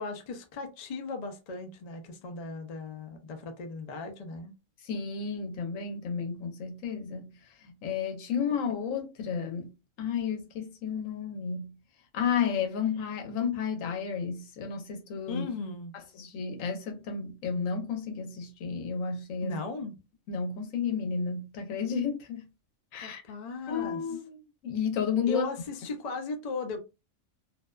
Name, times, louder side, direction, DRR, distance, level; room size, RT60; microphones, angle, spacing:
voice 1, 0.0-4.5 15.3-16.0 19.4-19.9 23.0-24.0 25.3-26.8, left 4 dB, 55° left, 0.4 m, -37 dB
voice 2, 4.8-9.7 10.0-11.8 12.1-15.4 15.9-19.6 20.3-22.5 22.9-23.2 23.7-25.5, left 6 dB, 85° left, 1.1 m, -32 dB
2.6 x 2.1 x 2.2 m
omnidirectional pair, 1.3 m